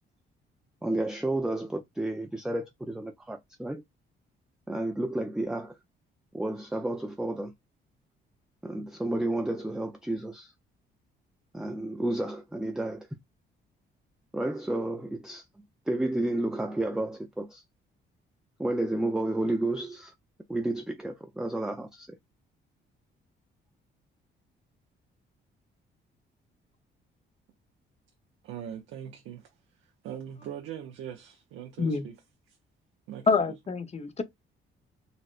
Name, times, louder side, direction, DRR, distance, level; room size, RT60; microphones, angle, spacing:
voice 1, 0.8-3.8 4.7-5.8 6.3-7.5 8.6-10.5 11.5-13.1 14.3-15.4 15.9-17.6 18.6-20.1 20.5-22.2, right 1 dB, 5° right, 0.3 m, -31 dB
voice 2, 28.4-29.5 30.0-32.2 32.5-32.6 33.1-33.5, right 9 dB, 85° right, 0.6 m, -41 dB
voice 3, 33.3-34.2, left 4 dB, 35° left, 0.7 m, -26 dB
4.1 x 2.1 x 2.4 m
cardioid pair, 90°, 20 cm